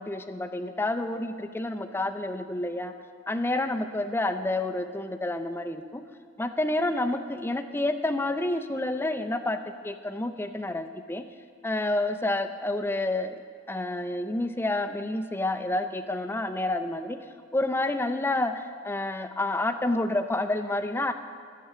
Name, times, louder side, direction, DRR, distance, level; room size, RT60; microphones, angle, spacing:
voice 1, 0.0-2.9 3.3-6.0 6.4-9.6 9.8-11.2 11.6-13.4 13.7-17.2 17.5-21.1, left 2 dB, 10° left, 7 dB, 0.5 m, -29 dB
10.5 x 6.8 x 8.2 m, 2.1 s
head